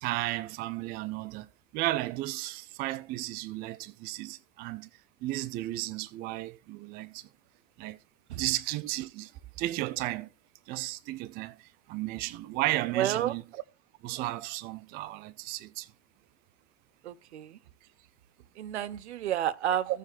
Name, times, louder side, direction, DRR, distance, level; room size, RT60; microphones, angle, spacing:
voice 1, 0.0-1.5 1.7-4.9 5.2-7.3 7.8-8.0 8.4-9.3 9.6-10.3 10.7-13.4 14.0-15.9 19.9-20.0, right 17 dB, 30° right, 0.4 m, -34 dB
voice 2, 12.9-13.4 17.0-17.6 18.6-20.0, right 11 dB, 70° right, 0.7 m, -30 dB
16.0 x 7.4 x 2.5 m
figure-of-eight pair, 85°, 35 cm